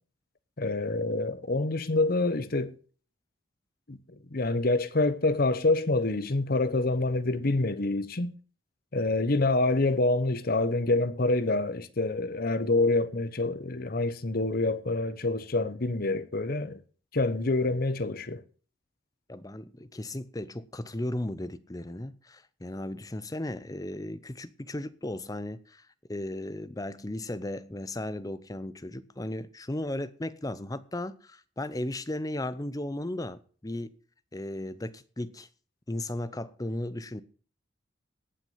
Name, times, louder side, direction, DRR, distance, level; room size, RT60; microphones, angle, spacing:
voice 1, 0.6-2.7 3.9-4.0 4.3-8.3 8.9-16.8 17.1-18.4, left 2 dB, 45° left, 0.9 m, -26 dB
voice 2, 19.3-25.8 26.1-33.9 34.3-35.5 35.9-37.2, left 1 dB, 20° left, 0.6 m, -35 dB
18.0 x 6.2 x 5.7 m
head